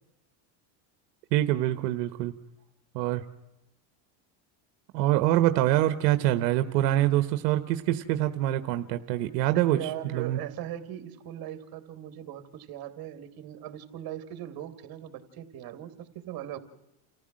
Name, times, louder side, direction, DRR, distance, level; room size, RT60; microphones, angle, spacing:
voice 1, 1.3-2.3 2.9-3.2 4.9-9.8 10.0-10.4, right 14 dB, 90° right, 10 dB, 1.2 m, -25 dB
voice 2, 9.5-16.6, right 11 dB, 45° right, 9 dB, 2.7 m, -39 dB
29.5 x 15.0 x 7.6 m, 0.93 s
supercardioid pair, 130°, 48 cm